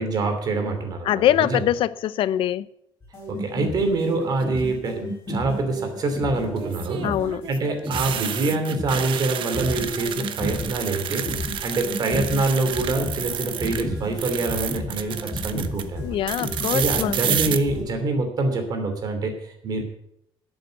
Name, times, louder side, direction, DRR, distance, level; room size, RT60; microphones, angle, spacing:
voice 1, 0.0-1.6 3.3-7.1 7.5-11.3 11.6-16.1 16.7-19.8, right 2 dB, 50° right, 2.9 m, -25 dB
voice 2, 1.0-2.7 7.0-7.4 16.0-17.2, left 12 dB, 80° left, 0.6 m, -23 dB
sound 1, 3.0-17.8, left 1 dB, 25° left, 6.4 m, -32 dB
sound 2, 4.2-4.7 6.6-13.8 14.1-15.8 16.3-17.6, right 10 dB, 70° right, 1.0 m, -30 dB
13.0 x 7.9 x 8.1 m
cardioid pair, 165°, 9 cm